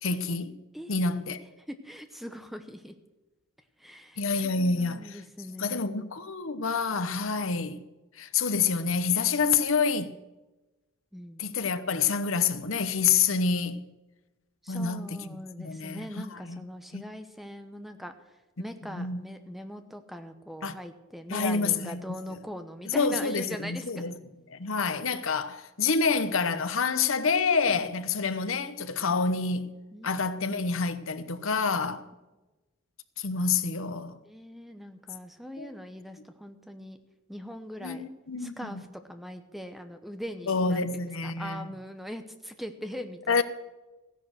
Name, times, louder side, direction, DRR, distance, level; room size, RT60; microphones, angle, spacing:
voice 1, 0.0-0.6 0.9-1.4 4.2-5.2 5.6-7.8 8.2-10.1 11.4-13.9 14.7-16.6 16.9-17.0 18.9-19.2 20.6-20.7 21.3-22.0 22.9-24.1 24.5-29.8 30.0-32.0 33.2-34.2 35.6-35.7 37.8-38.8 40.5-41.7 43.3-43.4, left 5 dB, 70° left, 0.9 m, -28 dB
voice 2, 0.7-2.9 3.8-6.0 11.1-11.5 14.6-18.1 18.6-24.2 27.7-27.9 29.9-30.2 34.2-37.0 37.3-38.1 38.4-43.4, equal, ahead, 0.9 m, -41 dB
15.0 x 10.5 x 6.4 m
head